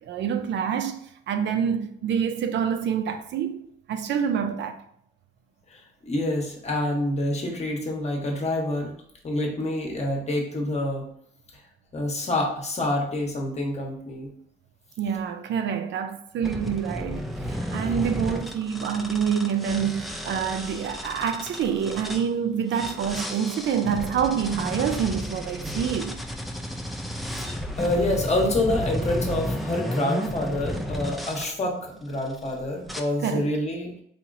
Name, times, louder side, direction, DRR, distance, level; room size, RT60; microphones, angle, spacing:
voice 1, 0.0-4.8 15.0-26.2 33.2-33.5, right 7 dB, 65° right, 0.4 m, -27 dB
voice 2, 5.7-8.9 9.2-11.1 11.9-14.3 27.4-33.9, left 1 dB, 35° left, 1.0 m, -27 dB
sound 1, 16.4-22.3 22.7-31.5 32.1-32.5 32.9-33.0, equal, ahead, 0.4 m, -32 dB
4.2 x 2.8 x 2.6 m
cardioid pair, 90°, 20 cm